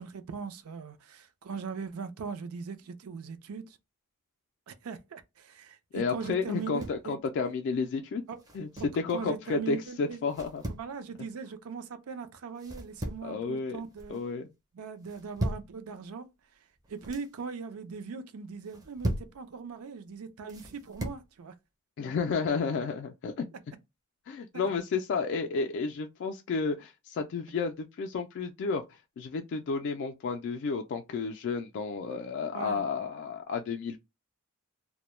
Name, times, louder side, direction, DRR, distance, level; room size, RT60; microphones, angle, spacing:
voice 1, 0.0-3.8 4.7-7.2 8.3-8.4 9.1-10.2 10.7-14.2 14.7-16.3 16.9-21.5 24.5-24.7 32.5-32.8, right 5 dB, 75° right, 0.4 m, -40 dB
voice 2, 5.9-8.2 8.5-8.7 8.9-10.6 13.2-13.8 14.1-14.5 22.0-23.5 24.3-28.8 29.2-34.0, left 4 dB, 55° left, 0.3 m, -31 dB
sound 1, 6.5-7.1 8.4-9.0 10.3-10.9 12.6-13.3 13.7-14.2 15.0-15.7 16.8-17.3 18.6-19.4 20.5-21.2, right 1 dB, 15° right, 0.4 m, -37 dB
2.1 x 2.1 x 3.0 m
head